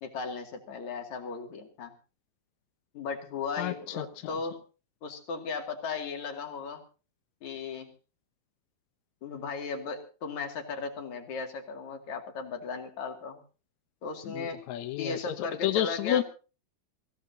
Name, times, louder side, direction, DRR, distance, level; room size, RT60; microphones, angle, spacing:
voice 1, 0.0-1.9 2.9-4.6 5.0-6.8 7.4-7.9 9.2-13.4 14.0-14.6 15.0-16.2, left 4 dB, 55° left, 4 dB, 3.5 m, -36 dB
voice 2, 3.6-4.0 14.2-16.2, left 12 dB, 75° left, 9 dB, 1.7 m, -30 dB
24.5 x 16.0 x 2.8 m, 0.35 s
omnidirectional pair, 4.3 m